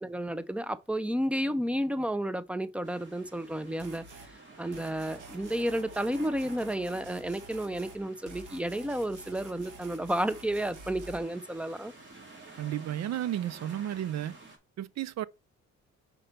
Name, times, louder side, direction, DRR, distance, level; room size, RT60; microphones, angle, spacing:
voice 1, 0.0-4.1 4.6-11.9, right 1 dB, 5° right, 0.6 m, -31 dB
sound 1, 2.8-14.6, right 3 dB, 40° right, 2.7 m, -52 dB
sound 2, 3.8-4.3 4.7-8.0 8.3-11.2, right 2 dB, 80° right, 1.8 m, -49 dB
voice 2, 12.6-14.4 14.8-15.3, right 11 dB, 60° right, 0.6 m, -33 dB
5.6 x 4.5 x 5.2 m
cardioid pair, 90°, 30 cm